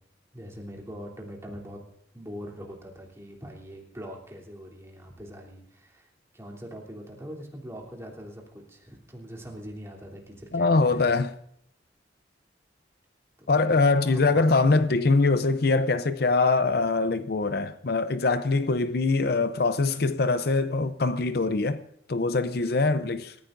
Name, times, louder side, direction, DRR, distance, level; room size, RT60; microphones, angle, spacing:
voice 1, 0.3-1.8 2.1-11.2 13.4-14.5, equal, 15° right, 3.1 m, -42 dB
voice 2, 10.5-11.3 13.5-21.8 22.1-23.3, left 3 dB, 55° left, 0.6 m, -23 dB
26.5 x 14.5 x 2.6 m
head